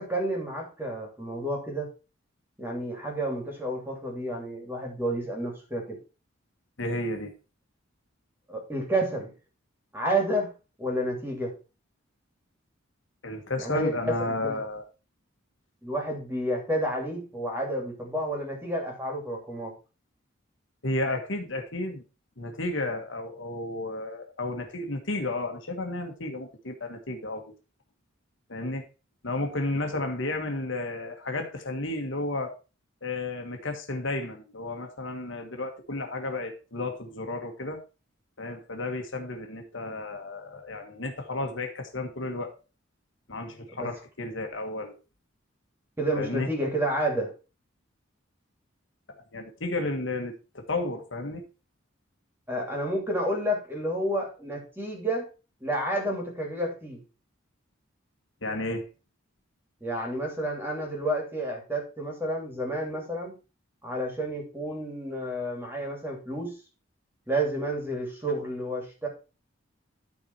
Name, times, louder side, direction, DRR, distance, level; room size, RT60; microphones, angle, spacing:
voice 1, 0.0-1.9 2.6-6.0 8.5-9.3 9.9-10.5 10.8-11.5 13.6-14.6 15.8-19.7 43.8-43.9 46.0-47.3 52.5-55.3 55.6-57.0 59.8-63.3 63.8-66.6 67.3-69.1, right 1 dB, 10° right, 2.8 m, -30 dB
voice 2, 6.8-7.3 13.2-14.8 20.8-22.0 22.4-27.5 28.5-28.8 29.2-32.5 33.0-37.8 38.4-42.5 43.3-44.9 46.1-46.5 49.3-51.5 58.4-58.9, left 2 dB, 65° left, 1.7 m, -32 dB
12.5 x 4.3 x 4.6 m
head